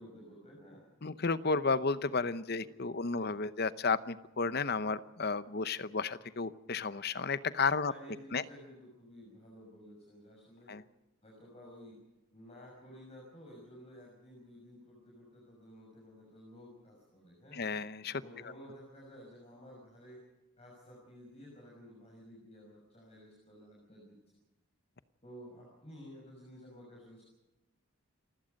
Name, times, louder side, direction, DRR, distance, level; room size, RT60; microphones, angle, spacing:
voice 1, 0.0-0.9 2.6-2.8 3.1-3.3 7.8-10.7 11.2-12.0 12.3-17.7 18.1-20.2 20.6-24.2 25.2-27.2, equal, 30° left, -2 dB, 5.9 m, -53 dB
voice 2, 1.0-7.9 8.3-8.4 10.7-10.8 17.5-18.2, left 4 dB, 50° left, 14 dB, 0.8 m, -32 dB
29.0 x 16.5 x 5.3 m, 1.0 s
head